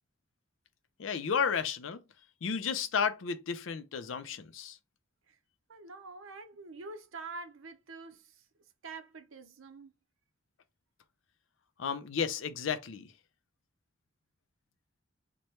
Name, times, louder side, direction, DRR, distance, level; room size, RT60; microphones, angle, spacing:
voice 1, 1.0-2.0 2.4-4.8 11.8-13.1, left 6 dB, 75° left, 0.5 m, -32 dB
voice 2, 5.7-8.5 8.8-9.9, right 3 dB, 90° right, 0.7 m, -46 dB
3.1 x 2.2 x 4.2 m
head